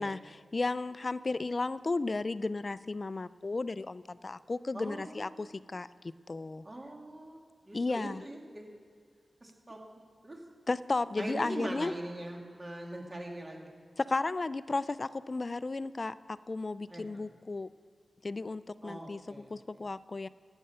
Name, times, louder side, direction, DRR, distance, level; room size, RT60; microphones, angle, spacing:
voice 1, 0.0-5.9 6.3-6.6 7.7-8.2 10.7-11.9 14.0-17.7 18.2-20.3, left 3 dB, 40° left, 17 dB, 0.3 m, -34 dB
voice 2, 4.7-5.5 6.6-7.4 7.6-8.6 9.4-9.8 10.2-10.4 11.2-13.7 16.9-17.3 18.8-19.8, right 1 dB, 30° right, 0 dB, 2.2 m, -42 dB
13.0 x 8.9 x 5.6 m, 2.2 s
wide cardioid pair, 75°, 0 cm